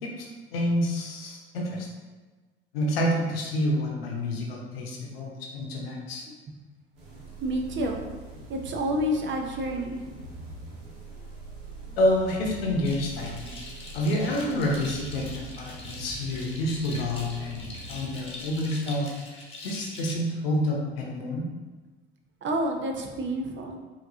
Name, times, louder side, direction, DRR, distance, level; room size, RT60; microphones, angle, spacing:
voice 1, 0.0-1.9 2.7-6.2 12.0-13.5 13.9-21.4, left 1 dB, 80° left, -1 dB, 0.9 m, -28 dB
sound 1, 6.9-18.9, right 3 dB, 75° right, 1.3 m, -43 dB
voice 2, 7.4-8.0 8.5-10.4 22.4-23.8, equal, 40° right, 2 dB, 0.8 m, -29 dB
sound 2, 12.8-20.1, left 2 dB, 20° left, 1.2 m, -43 dB
5.0 x 2.9 x 2.7 m, 1.3 s
hypercardioid pair, 65°, 29 cm